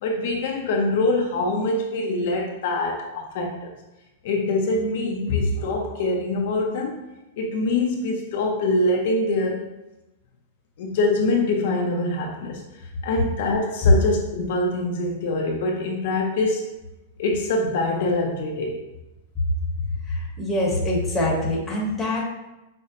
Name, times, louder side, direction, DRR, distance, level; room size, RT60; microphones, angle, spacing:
voice 1, 0.0-3.7 4.2-7.0 7.4-9.7 10.8-12.6 13.0-16.7 17.2-18.8, left 2 dB, 60° left, 1 dB, 0.5 m, -24 dB
voice 2, 20.0-22.2, left 1 dB, 10° left, -4 dB, 0.9 m, -24 dB
5.1 x 2.0 x 2.6 m, 0.99 s
supercardioid pair, 145°, 0 cm